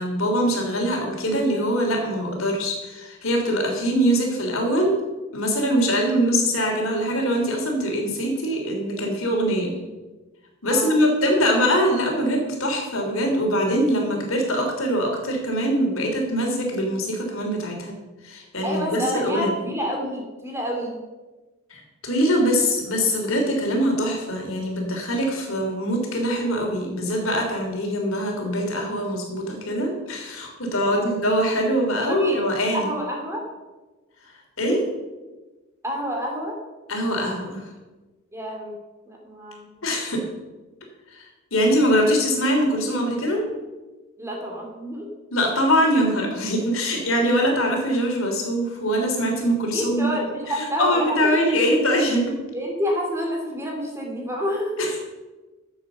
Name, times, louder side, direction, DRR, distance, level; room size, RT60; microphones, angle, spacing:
voice 1, 0.0-5.0 5.3-9.8 10.6-17.9 18.2-19.7 21.7-32.9 34.2-34.3 34.6-34.8 36.9-37.7 39.8-40.2 41.1-43.5 45.3-50.1 50.5-52.4 54.8-55.0, equal, 75° left, 1 dB, 3.3 m, -23 dB
voice 2, 18.6-21.0 30.8-31.1 31.8-32.4 32.7-33.4 35.8-36.6 38.3-38.8 39.1-39.7 44.2-45.1 49.7-51.6 52.5-54.8, equal, 15° right, 0 dB, 2.7 m, -28 dB
12.0 x 7.5 x 6.8 m, 1.2 s
head